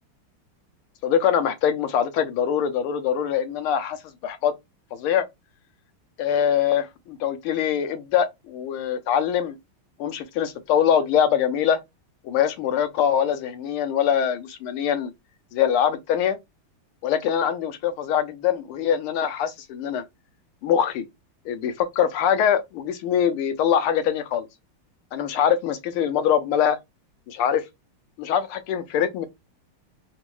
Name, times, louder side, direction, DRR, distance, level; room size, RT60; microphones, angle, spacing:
voice 1, 1.0-4.0 4.2-4.5 4.9-5.2 6.2-9.6 10.0-11.8 12.2-15.1 15.5-16.4 17.0-20.0 20.6-21.0 21.4-24.5 25.1-26.8 27.3-27.6 28.2-29.3, left 9 dB, 85° left, 1.6 m, -23 dB
4.1 x 2.2 x 3.0 m
omnidirectional pair, 2.4 m